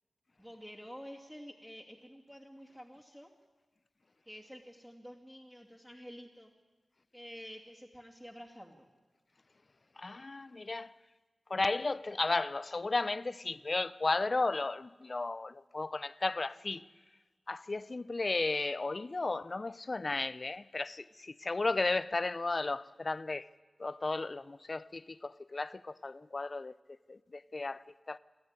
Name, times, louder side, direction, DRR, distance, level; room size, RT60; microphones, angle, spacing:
voice 1, 0.4-3.3 4.3-6.5 7.1-8.9, equal, 10° right, 2.6 m, -49 dB
voice 2, 10.0-10.9 11.5-16.9 17.5-23.5 23.8-26.7 27.1-28.2, left 3 dB, 45° left, 0.6 m, -34 dB
24.5 x 14.0 x 9.8 m
wide cardioid pair, 70°, 0 cm